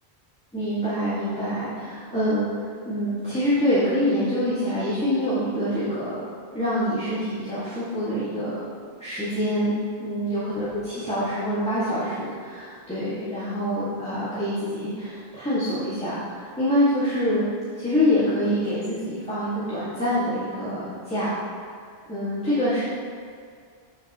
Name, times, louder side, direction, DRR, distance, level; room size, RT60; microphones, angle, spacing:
voice 1, 0.5-2.5 2.8-6.2 6.5-8.6 9.0-9.7 10.0-17.4 17.8-21.3 22.1-22.8, equal, 5° left, -13 dB, 1.9 m, -25 dB
7.8 x 7.3 x 3.0 m, 2.2 s
omnidirectional pair, 1.0 m